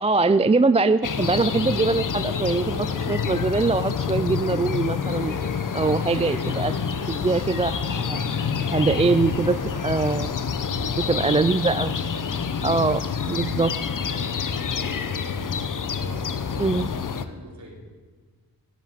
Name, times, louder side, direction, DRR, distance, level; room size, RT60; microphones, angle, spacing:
voice 1, 0.0-5.3 5.7-6.7 7.1-8.3 8.7-9.6 9.8-10.3 11.1-11.9 12.6-13.0 13.3-13.7 16.6-16.9, right 3 dB, 15° right, 12 dB, 0.4 m, -22 dB
sound 1, 1.0-17.2, left 6 dB, 55° left, 1.0 m, -27 dB
sound 2, 4.0-7.7, right 1 dB, 10° left, 5.3 m, -44 dB
sound 3, 4.9-10.3, right 5 dB, 65° right, 1.6 m, -46 dB
voice 2, 6.0-6.3 10.7-11.7 12.1-12.4 13.2-13.5 13.8-17.8, right 2 dB, 50° right, -1 dB, 4.2 m, -45 dB
16.5 x 8.3 x 9.4 m, 1.4 s
wide cardioid pair, 85°, 38 cm